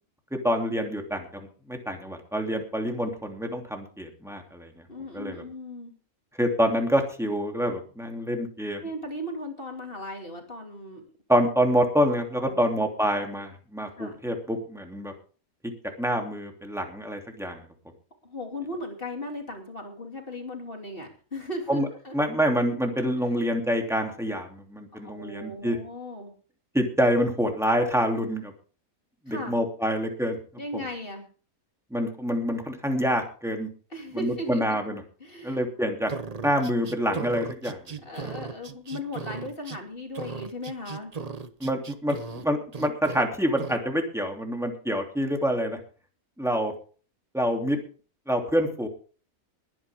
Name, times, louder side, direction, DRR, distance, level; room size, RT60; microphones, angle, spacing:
voice 1, 0.3-4.7 5.1-5.4 6.4-8.8 11.3-15.1 16.0-17.6 21.7-21.9 22.1-25.8 26.7-28.5 29.3-30.4 31.9-33.7 34.1-35.0 35.4-36.1 36.4-37.8 38.2-38.3 41.6-45.8 46.4-46.7 47.3-47.8 48.3-48.9, equal, ahead, 3 dB, 2.8 m, -26 dB
voice 2, 4.9-5.9 8.8-11.1 12.3-12.7 14.0-14.2 18.2-22.1 25.0-26.3 29.3-29.6 30.6-31.3 33.9-34.9 35.2-35.6 38.0-41.1, left 1 dB, 40° left, 2 dB, 3.1 m, -37 dB
sound 1, 36.1-39.8 40.1-42.4 42.7-43.2 43.6-43.8, right 5 dB, 35° right, 0.8 m, -37 dB
21.0 x 9.7 x 3.6 m, 0.39 s
omnidirectional pair, 1.5 m